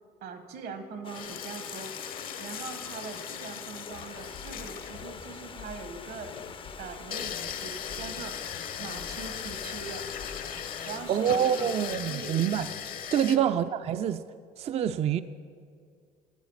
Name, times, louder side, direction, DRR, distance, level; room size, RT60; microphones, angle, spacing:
voice 1, 0.2-1.9 2.4-6.3 6.8-8.3 8.8-10.1 10.8-11.7 12.1-12.3 13.3-13.5, right 4 dB, 70° right, 1.3 m, -41 dB
Stream, 1.0-11.9, left 6 dB, 30° left, 0.4 m, -45 dB
sound 1, 1.1-13.4, left 8 dB, 60° left, 0.7 m, -39 dB
sound 2, 3.9-10.7, left 5 dB, 85° left, 1.7 m, -49 dB
voice 2, 11.1-12.7 13.1-14.2 14.6-15.2, right 9 dB, 40° right, 0.4 m, -26 dB
11.5 x 9.6 x 5.6 m
cardioid pair, 110°, 17 cm